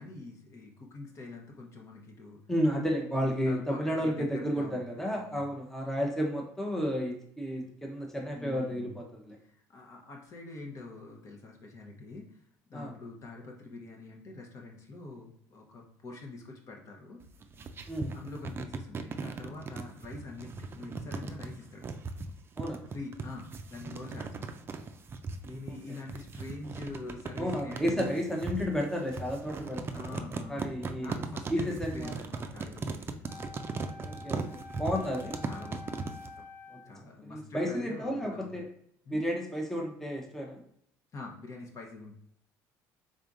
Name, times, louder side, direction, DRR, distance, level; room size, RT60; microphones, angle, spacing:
voice 1, 0.0-2.4 3.2-5.5 7.6-7.7 8.3-9.1 9.4-12.4 12.7-17.2 18.1-21.9 22.9-24.6 25.4-27.9 29.9-33.6 35.4-35.9 36.4-36.5 36.7-38.6 39.0-39.2 41.1-42.1, left 3 dB, 45° left, 1 dB, 1.0 m, -45 dB
voice 2, 2.5-9.4 12.7-12.9 17.9-18.1 22.6-22.8 27.4-30.2 30.5-31.2 31.5-32.1 34.0-35.4 36.7-36.8 37.2-38.6 39.1-40.6, equal, 5° left, 0 dB, 0.8 m, -32 dB
sound 1, 17.2-36.3, right 4 dB, 30° right, 0.4 m, -38 dB
Wind instrument woodwind instrument, 33.2-37.0, left 3 dB, 25° left, 1.1 m, -48 dB
3.7 x 3.4 x 2.5 m, 0.68 s
supercardioid pair, 90°, 7 cm